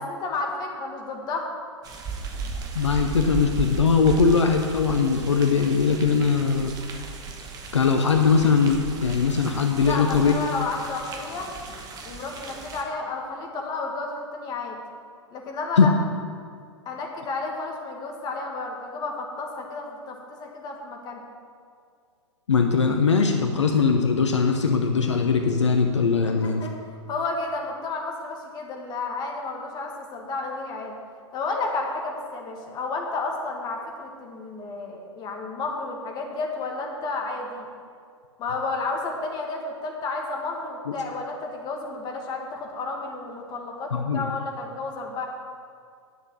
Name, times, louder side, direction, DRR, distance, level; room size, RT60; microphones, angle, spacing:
voice 1, 0.0-1.5 9.8-11.5 12.0-14.8 15.3-15.9 16.9-21.2 26.2-26.7 27.1-30.9 31.3-37.7 38.4-45.3, left 3 dB, 25° left, 1 dB, 1.8 m, -32 dB
sound 1, 1.8-12.8, right 5 dB, 25° right, 1.2 m, -36 dB
voice 2, 2.7-6.7 7.7-10.3 15.8-15.9 22.5-26.7 40.9-41.0 43.9-44.2, left 5 dB, 70° left, 4 dB, 0.8 m, -21 dB
10.0 x 6.7 x 7.1 m, 2.2 s
figure-of-eight pair, 100°, 16 cm